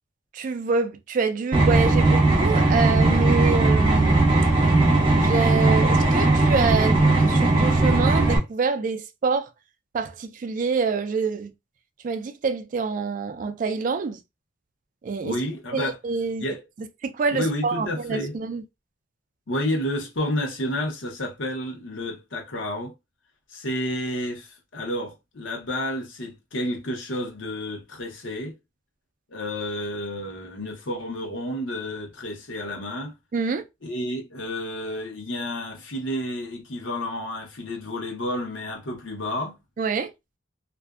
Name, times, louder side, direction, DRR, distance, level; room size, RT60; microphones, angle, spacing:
voice 1, 0.3-4.2 5.2-9.5 9.9-11.5 12.0-14.2 15.0-15.4 15.7-16.4 17.0-18.6 33.3-33.6 39.8-40.1, right 4 dB, 45° right, 0.3 m, -26 dB
sound 1, 1.5-8.4, right 2 dB, 25° right, 0.9 m, -18 dB
voice 2, 15.2-16.0 16.4-16.6 17.3-18.3 19.5-22.9 23.5-28.5 29.3-33.1 33.8-39.6, left 1 dB, 80° left, 0.8 m, -30 dB
2.5 x 2.1 x 2.3 m
head